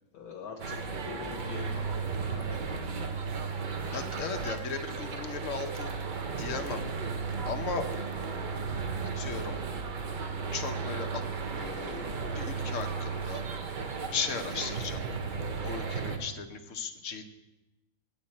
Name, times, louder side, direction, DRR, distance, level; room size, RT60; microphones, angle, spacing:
voice 1, 0.1-3.0, left 6 dB, 80° left, 2 dB, 1.4 m, -44 dB
sound 1, 0.6-16.2, right 5 dB, 45° right, 0.7 m, -35 dB
voice 2, 3.9-5.9 6.4-6.9 7.5-7.9 9.1-9.6 10.5-13.4 14.1-15.0 15.6-17.3, left 5 dB, 60° left, 7 dB, 1.0 m, -36 dB
8.6 x 8.4 x 4.3 m, 1.0 s
omnidirectional pair, 1.6 m